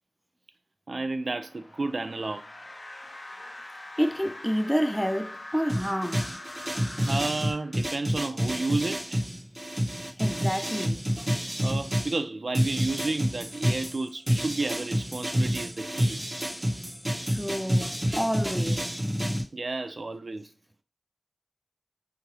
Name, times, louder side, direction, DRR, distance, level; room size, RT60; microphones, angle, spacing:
voice 1, 0.9-2.5 7.0-9.2 11.6-16.2 19.5-20.5, right 3 dB, 75° right, 0.3 m, -31 dB
sound 1, 1.1-8.2, left 1 dB, 65° left, 0.5 m, -44 dB
voice 2, 4.0-6.3 10.2-11.0 17.3-19.0, equal, 5° left, 0.4 m, -29 dB
sound 2, 5.7-12.2 12.5-19.4, equal, 25° right, 1.0 m, -29 dB
2.8 x 2.4 x 3.1 m
wide cardioid pair, 45°, 0 cm